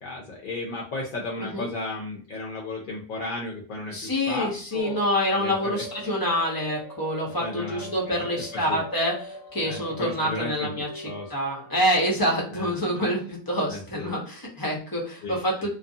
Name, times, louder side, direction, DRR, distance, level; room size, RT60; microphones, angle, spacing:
voice 1, 0.0-5.0 5.4-5.8 7.4-8.3 8.5-8.8 9.6-11.3 12.5-13.0 13.7-14.1 15.2-15.7, left 2 dB, 55° left, -2 dB, 0.6 m, -35 dB
voice 2, 3.9-15.7, equal, 25° left, -1 dB, 0.7 m, -27 dB
sound 1, 4.8-12.0, left 1 dB, 10° right, 1.1 m, -42 dB
2.5 x 2.3 x 2.6 m, 0.41 s
omnidirectional pair, 1.2 m